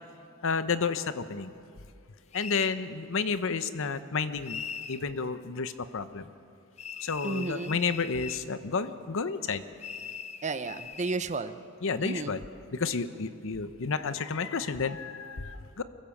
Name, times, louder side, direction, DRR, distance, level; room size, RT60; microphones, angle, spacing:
voice 1, 0.4-1.5 2.3-4.6 4.9-6.3 7.0-9.6 11.8-12.4 12.7-15.8, left 5 dB, 65° left, 12 dB, 0.8 m, -31 dB
sound 1, 2.3-2.8 4.4-5.0 6.8-8.5 9.8-11.2, left 7 dB, 30° left, 0.6 m, -40 dB
voice 2, 7.2-7.8 10.4-11.6 12.0-12.4, right 3 dB, 35° right, 12 dB, 0.7 m, -32 dB
24.0 x 16.0 x 7.2 m, 2.4 s
head